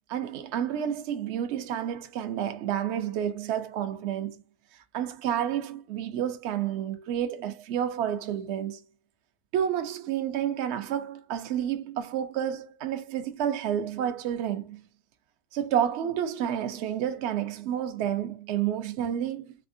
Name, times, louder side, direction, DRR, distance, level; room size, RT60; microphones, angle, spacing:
voice 1, 0.1-4.4 4.9-8.8 9.5-14.8 15.5-19.6, right 10 dB, 70° right, 0.6 m, -30 dB
4.3 x 2.3 x 2.5 m
omnidirectional pair, 1.7 m